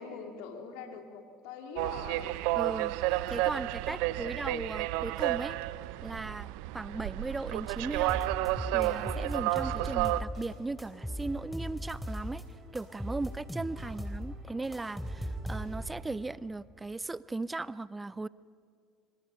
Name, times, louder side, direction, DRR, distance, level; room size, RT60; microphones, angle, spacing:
voice 1, 0.0-2.4 3.9-4.3 13.8-13.9, left 6 dB, 70° left, 5 dB, 2.4 m, -44 dB
sound 1, 1.8-10.2, right 17 dB, 70° right, 0.5 m, -31 dB
voice 2, 2.6-5.6 6.0-8.2 8.7-12.4 12.7-18.3, right 3 dB, 15° right, 20 dB, 0.4 m, -37 dB
sound 2, 8.1-10.5 10.8-12.4 12.8-16.0, equal, 5° left, 3.7 m, -38 dB
sound 3, 9.5-16.3, right 2 dB, 40° right, 4.8 m, -56 dB
25.5 x 24.5 x 5.7 m, 2.3 s
hypercardioid pair, 65°, 0 cm